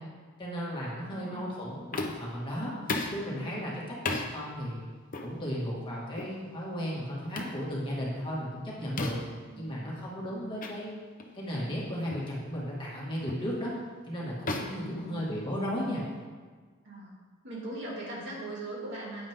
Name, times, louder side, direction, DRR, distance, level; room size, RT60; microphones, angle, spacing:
voice 1, 0.4-4.9 5.2-9.2 9.6-10.9 11.3-13.7 14.1-16.0, equal, 25° left, -6 dB, 2.1 m, -35 dB
voice 2, 0.9-1.5 9.4-9.8 14.8-15.3 16.8-17.2 17.4-19.3, right 2 dB, 55° right, -6 dB, 3.0 m, -40 dB
sound 1, 1.9-2.4 2.9-3.2 4.1-4.3 5.1-5.3 6.2-6.4 7.4-7.6 9.0-9.4 10.6-10.8 11.2-11.4 12.1-12.3 13.3-13.5 14.5-15.7, left 2 dB, 40° left, 0.9 m, -34 dB
9.4 x 9.1 x 3.7 m, 1.5 s
head